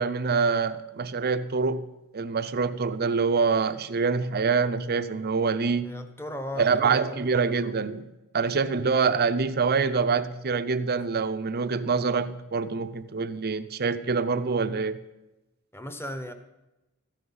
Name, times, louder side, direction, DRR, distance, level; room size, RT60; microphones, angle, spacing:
voice 1, 0.0-1.8 2.1-6.0 6.6-8.1 8.3-15.0, right 5 dB, 45° right, 11 dB, 0.6 m, -25 dB
voice 2, 5.8-7.3 15.7-16.3, left 1 dB, 10° left, 9 dB, 1.0 m, -36 dB
13.5 x 10.0 x 5.6 m, 0.99 s
head